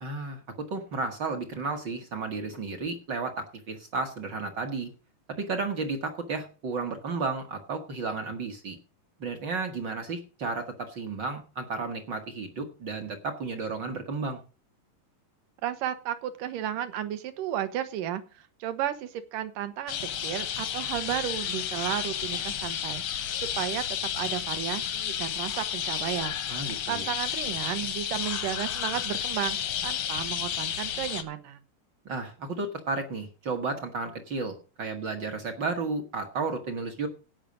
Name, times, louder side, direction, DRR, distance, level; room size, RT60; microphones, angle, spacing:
voice 1, 0.0-4.9 5.4-8.8 9.2-14.4 26.5-27.1 32.0-37.1, right 3 dB, 55° right, 6 dB, 1.2 m, -33 dB
voice 2, 15.6-23.8 24.1-26.4 26.9-29.6 29.8-31.6, right 11 dB, 75° right, 11 dB, 2.6 m, -33 dB
sound 1, 19.9-31.2, left 9 dB, 75° left, 1.2 m, -32 dB
17.0 x 5.8 x 5.1 m, 0.34 s
omnidirectional pair, 3.9 m